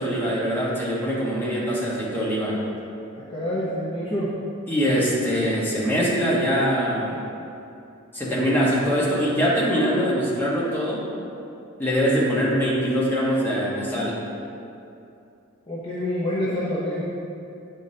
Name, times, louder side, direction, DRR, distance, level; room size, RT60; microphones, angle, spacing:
voice 1, 0.0-2.6 4.7-7.2 8.1-11.0 11.8-14.2, equal, 10° left, -7 dB, 1.2 m, -23 dB
voice 2, 3.3-4.3 15.7-17.1, left 1 dB, 25° left, -8 dB, 0.8 m, -27 dB
9.0 x 5.1 x 2.8 m, 2.7 s
head